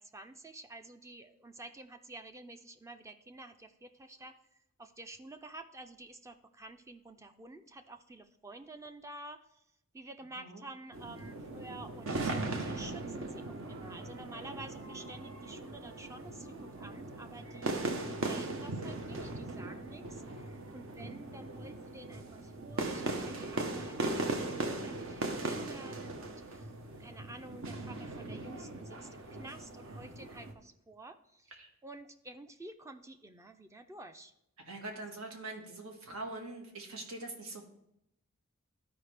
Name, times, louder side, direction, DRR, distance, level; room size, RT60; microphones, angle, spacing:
voice 1, 0.0-4.4 4.8-9.6 9.9-26.7 27.0-31.5 31.8-34.3, right 2 dB, 15° right, 8 dB, 0.4 m, -50 dB
sound 1, 10.9-30.5, right 2 dB, 65° right, 0.9 m, -39 dB
voice 2, 34.7-37.6, right 2 dB, 90° right, 2 dB, 1.6 m, -43 dB
12.5 x 4.9 x 3.3 m, 0.81 s
head